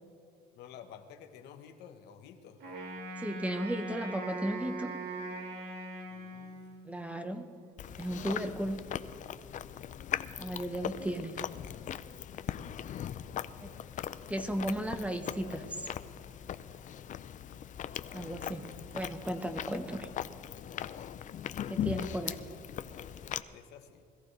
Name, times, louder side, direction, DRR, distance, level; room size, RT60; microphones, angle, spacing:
voice 1, 0.5-2.6 6.1-6.6 10.2-10.5 13.2-14.1 20.7-21.1 21.9-22.3 23.5-24.0, left 8 dB, 85° left, 6 dB, 1.2 m, -52 dB
Wind instrument woodwind instrument, 2.6-7.0, right 2 dB, 75° right, 3.2 m, -41 dB
voice 2, 3.2-4.9 6.8-7.5 8.0-8.8 10.4-11.4 13.6-13.7 14.3-15.9 18.1-20.1 21.7-22.3, right 1 dB, 10° right, 7 dB, 1.2 m, -35 dB
Chewing mastication, 7.8-23.4, left 10 dB, 50° left, 0.6 m, -40 dB
21.5 x 14.5 x 3.4 m, 2.6 s
cardioid pair, 110°, 17 cm